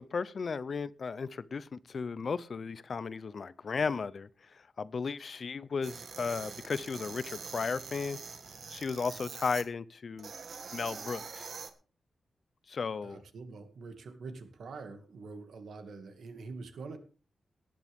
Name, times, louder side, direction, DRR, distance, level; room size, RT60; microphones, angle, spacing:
voice 1, 0.0-8.2 8.7-10.3 10.7-11.5 12.7-13.2, left 5 dB, 45° left, 0.6 m, -35 dB
sound 1, 5.8-9.6 10.2-11.7, right 5 dB, 55° right, 1.6 m, -44 dB
voice 2, 13.0-17.0, right 4 dB, 80° right, 2.2 m, -45 dB
17.5 x 11.0 x 3.6 m
wide cardioid pair, 175°, 0 cm